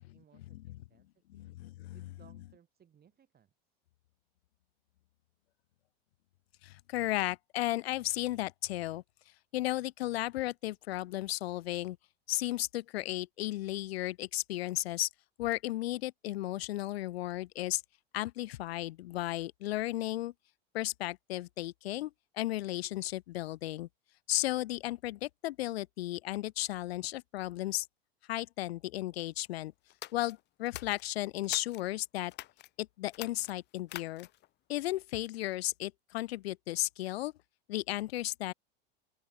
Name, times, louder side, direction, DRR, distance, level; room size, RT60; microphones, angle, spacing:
voice 1, 0.0-1.6 1.9-3.5, right 8 dB, 30° right, 4.0 m, -64 dB
voice 2, 1.3-2.0 6.6-9.0 9.5-12.0 12.3-15.1 15.4-17.8 18.1-20.3 20.7-23.9 24.3-27.9 28.3-29.7 30.1-32.3 32.8-34.3 34.7-37.3 37.7-38.5, left 16 dB, 85° left, 0.6 m, -34 dB
sound 1, 29.9-31.9 32.3-32.7 33.1-34.5, left 16 dB, 35° left, 0.5 m, -46 dB
open air
hypercardioid pair, 95°, 31 cm